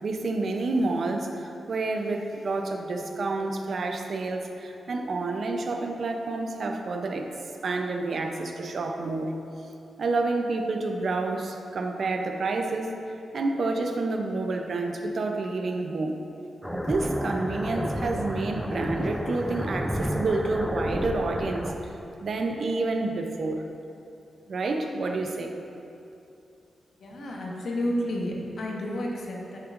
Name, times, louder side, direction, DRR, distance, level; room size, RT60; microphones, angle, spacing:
voice 1, 0.0-7.3 7.6-9.3 10.0-12.9 13.3-16.2 16.7-23.6 24.5-25.5, right 3 dB, 55° right, 4 dB, 0.6 m, -29 dB
sound 1, 16.6-21.7, equal, ahead, 0.3 m, -31 dB
voice 2, 27.0-29.6, left 1 dB, 65° left, -2 dB, 1.1 m, -31 dB
9.9 x 5.8 x 2.5 m, 2.7 s
wide cardioid pair, 125°, 0 cm